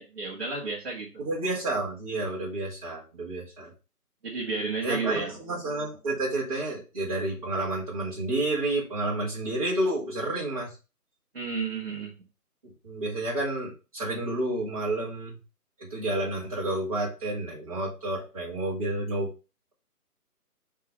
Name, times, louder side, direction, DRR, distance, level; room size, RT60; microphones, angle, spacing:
voice 1, 0.0-1.1 4.2-5.3 11.3-12.2, right 4 dB, 40° right, 1.5 m, -32 dB
voice 2, 1.2-3.7 4.8-10.7 12.8-15.4 15.8-19.3, right 2 dB, 20° right, 2.1 m, -30 dB
5.4 x 3.7 x 5.3 m
figure-of-eight pair, 170°, 47 cm